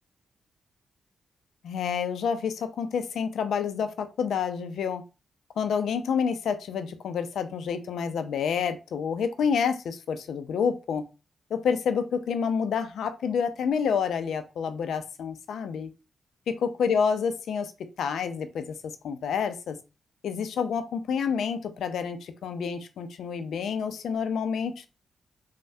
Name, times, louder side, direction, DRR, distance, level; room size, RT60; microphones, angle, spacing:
voice 1, 1.6-5.0 5.6-11.0 11.5-15.9 16.6-17.7 18.0-18.7 19.0-19.8 20.2-24.9, left 6 dB, 75° left, 0.4 m, -28 dB
3.2 x 2.1 x 2.6 m
hypercardioid pair, 40°, 0 cm